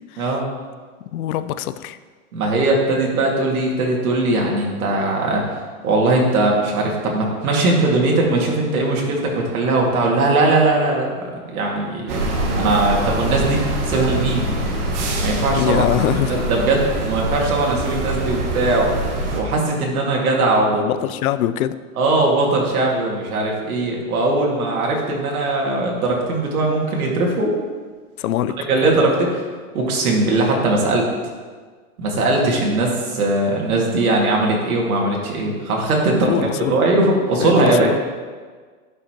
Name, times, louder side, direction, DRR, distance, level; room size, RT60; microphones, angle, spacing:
voice 1, 0.2-0.5 2.3-5.4 5.8-12.2 12.5-14.5 15.2-21.0 22.0-27.5 28.7-29.5 29.7-31.1 32.0-37.9, right 2 dB, 85° right, -1 dB, 2.2 m, -20 dB
voice 2, 1.1-2.0 15.6-16.4 20.7-21.7 28.2-28.6 32.4-32.5 36.3-36.8 37.4-38.0, left 12 dB, 80° left, 13 dB, 0.6 m, -23 dB
sound 1, 12.1-19.4, right 1 dB, 55° right, 1.5 m, -24 dB
11.5 x 5.6 x 2.9 m, 1.5 s
supercardioid pair, 160°, 42 cm